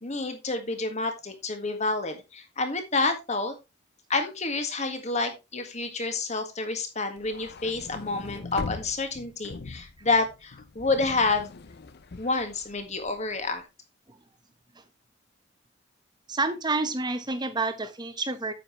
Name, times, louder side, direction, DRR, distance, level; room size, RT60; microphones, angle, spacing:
voice 1, 0.0-3.5 4.1-11.5 12.2-13.6, left 3 dB, 35° left, 7 dB, 1.8 m, -29 dB
sound 1, 7.2-13.5, left 3 dB, 50° left, 0.6 m, -41 dB
voice 2, 16.3-18.5, right 3 dB, 20° right, 10 dB, 1.1 m, -29 dB
9.3 x 7.8 x 3.1 m, 0.24 s
head